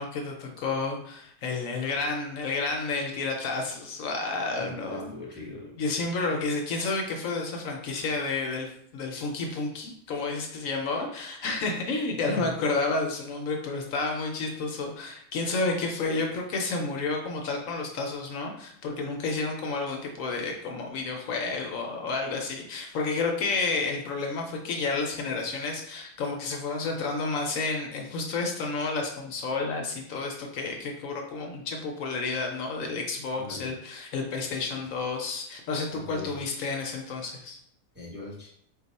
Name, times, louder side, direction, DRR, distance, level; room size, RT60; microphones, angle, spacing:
voice 1, 0.0-5.1 5.8-8.7 8.9-37.6, left 3 dB, 70° left, 2 dB, 1.0 m, -30 dB
voice 2, 4.6-5.8 12.2-12.5 33.4-33.7 35.9-36.4 37.9-38.5, left 2 dB, 10° right, -5 dB, 0.7 m, -40 dB
4.2 x 2.3 x 4.0 m, 0.67 s
omnidirectional pair, 1.5 m